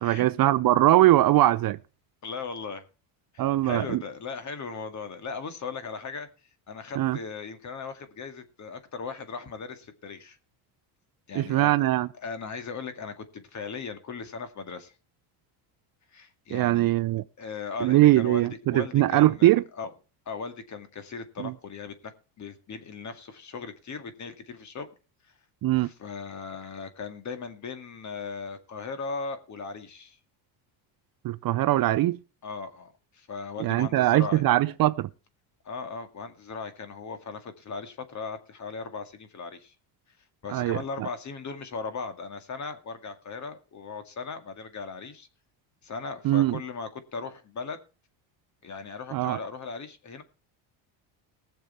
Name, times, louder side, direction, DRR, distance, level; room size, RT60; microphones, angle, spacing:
voice 1, 0.0-1.8 3.4-4.0 7.0-7.2 11.3-12.1 16.5-17.2 17.8-19.6 21.4-21.5 25.6-25.9 31.2-32.2 33.6-35.1 40.5-40.8 46.2-46.6 49.1-49.4, right 15 dB, 45° right, 0.6 m, -21 dB
voice 2, 2.2-2.8 3.3-6.3 6.7-10.4 11.3-11.7 12.2-14.9 16.1-16.9 17.4-19.9 20.3-22.1 22.4-24.9 25.8-30.2 32.4-34.4 35.6-39.7 40.4-45.3 45.8-47.8 48.6-50.2, left 5 dB, 35° left, 2.1 m, -38 dB
20.0 x 6.8 x 4.3 m
cardioid pair, 125°, 48 cm